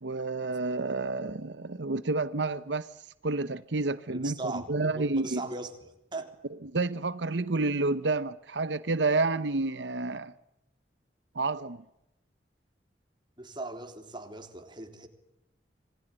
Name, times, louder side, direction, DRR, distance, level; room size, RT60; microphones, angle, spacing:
voice 1, 0.0-2.9 3.2-5.4 6.7-10.3 11.3-11.8, right 3 dB, 85° right, 0.9 m, -29 dB
voice 2, 4.1-6.3 13.4-15.1, right 2 dB, 25° right, 3.7 m, -39 dB
27.0 x 20.0 x 9.0 m
head